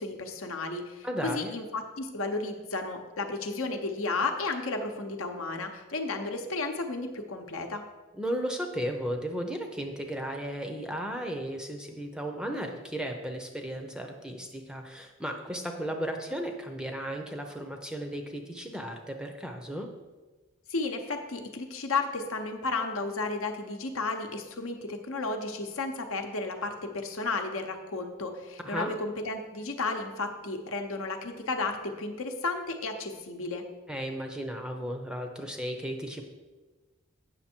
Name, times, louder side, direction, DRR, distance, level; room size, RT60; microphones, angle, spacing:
voice 1, 0.0-7.8 20.7-33.6, left 3 dB, 70° left, 5 dB, 0.9 m, -33 dB
voice 2, 1.0-1.5 8.1-19.9 28.6-28.9 33.9-36.2, equal, 5° right, 3 dB, 0.6 m, -35 dB
8.6 x 6.3 x 4.4 m, 1.3 s
head